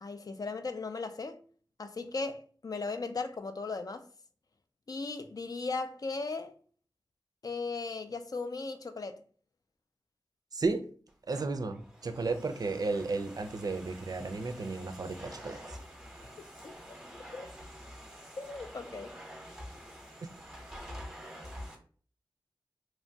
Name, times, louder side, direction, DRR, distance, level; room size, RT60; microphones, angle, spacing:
voice 1, 0.0-1.4 1.8-4.1 4.9-6.6 7.4-9.2 16.6-16.7 17.3-17.5 18.4-19.2, left 3 dB, 50° left, 0.4 m, -37 dB
voice 2, 10.5-10.9 11.3-15.8, right 3 dB, 55° right, 0.4 m, -33 dB
Domestic sounds home sounds, 11.1-21.8, equal, 5° right, 0.8 m, -48 dB
2.9 x 2.2 x 2.6 m
cardioid pair, 45°, 8 cm